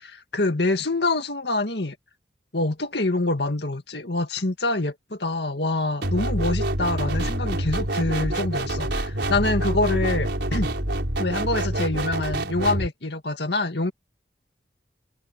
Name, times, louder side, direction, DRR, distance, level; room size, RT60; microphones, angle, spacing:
voice 1, 0.0-2.0 2.5-10.7 11.2-13.9, left 2 dB, 65° left, 2.1 m, -26 dB
sound 1, 6.0-12.9, right 1 dB, 75° right, 4.6 m, -26 dB
head